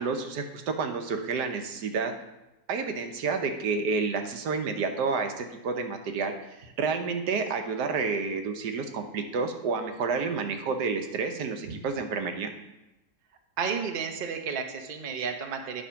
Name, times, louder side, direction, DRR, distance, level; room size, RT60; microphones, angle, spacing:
voice 1, 0.0-2.1 2.7-6.3 6.8-12.5, right 4 dB, 85° right, 6 dB, 1.4 m, -29 dB
voice 2, 13.6-15.8, right 6 dB, 45° right, 5 dB, 0.8 m, -32 dB
10.0 x 4.4 x 5.7 m, 0.96 s
omnidirectional pair, 1.7 m